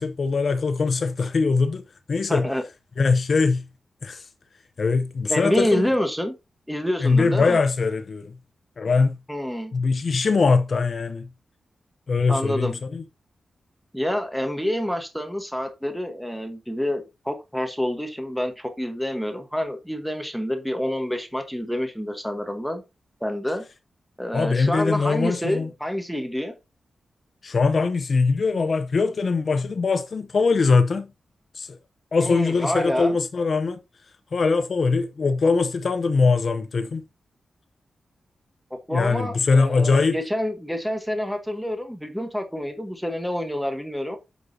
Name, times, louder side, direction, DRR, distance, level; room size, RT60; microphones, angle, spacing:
voice 1, 0.0-1.8 2.1-2.5 3.0-3.6 4.0-4.3 4.8-5.9 7.0-8.3 8.8-9.1 9.7-11.3 12.1-13.0 24.3-25.7 27.4-31.1 31.5-31.8 32.1-33.8 34.3-37.0 38.9-40.2, left 4 dB, 45° left, 0.6 m, -22 dB
voice 2, 2.3-2.6 5.3-6.3 6.7-7.6 9.3-9.7 12.3-12.7 13.9-22.8 23.2-23.6 24.2-26.5 32.2-33.2 38.7-44.2, equal, ahead, 1.1 m, -27 dB
8.0 x 6.1 x 2.7 m
wide cardioid pair, 170°, 0 cm